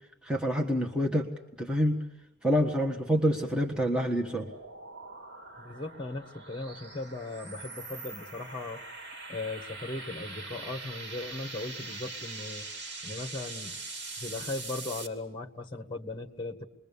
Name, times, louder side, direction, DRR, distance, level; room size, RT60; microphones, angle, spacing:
voice 1, 0.2-1.3 1.6-2.0 2.4-4.5, equal, 5° right, -1 dB, 1.4 m, -27 dB
sound 1, 3.9-15.1, right 3 dB, 60° right, 2.6 m, -43 dB
voice 2, 5.6-8.8 9.3-12.7 13.0-13.8 14.2-16.6, left 2 dB, 25° left, 5 dB, 1.7 m, -38 dB
28.5 x 22.0 x 7.0 m, 0.96 s
head